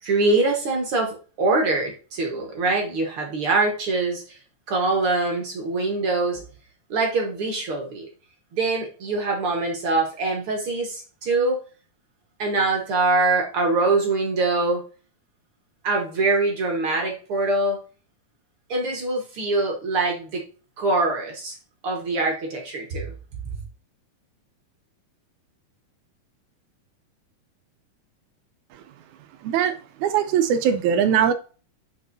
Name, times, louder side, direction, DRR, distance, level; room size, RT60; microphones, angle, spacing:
voice 1, 0.0-4.4 4.7-6.4 6.9-8.1 8.5-11.6 12.4-14.8 15.8-17.8 18.7-20.4 20.8-21.6 21.8-23.1 23.4-23.6, right 3 dB, 55° right, 1.5 m, -23 dB
voice 2, 29.4-29.8 30.0-31.3, right 8 dB, 80° right, 1.7 m, -20 dB
8.8 x 5.4 x 2.6 m
omnidirectional pair, 4.0 m